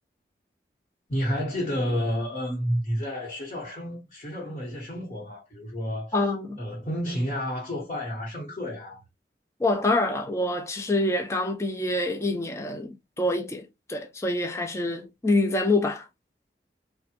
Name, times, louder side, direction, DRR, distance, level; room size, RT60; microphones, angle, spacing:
voice 1, 1.1-6.1 6.6-9.0, equal, 40° left, 1.1 m, -30 dB
voice 2, 6.1-6.6 9.6-16.1, left 2 dB, 15° left, 0.4 m, -26 dB
3.2 x 2.2 x 2.9 m
head